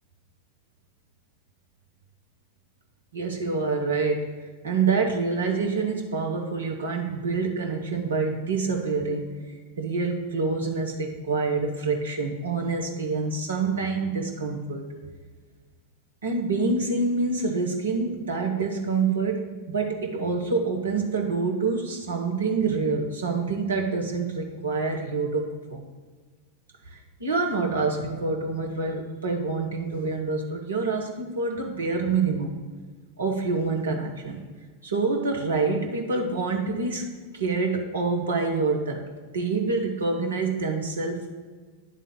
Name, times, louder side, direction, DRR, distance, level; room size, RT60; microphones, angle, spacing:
voice 1, 3.1-14.9 16.2-25.9 26.9-32.5 33.2-34.4 34.8-39.0 39.3-41.3, right 4 dB, 70° right, 1 dB, 1.3 m, -27 dB
10.5 x 3.7 x 5.5 m, 1.4 s
figure-of-eight pair, 90°, 0 cm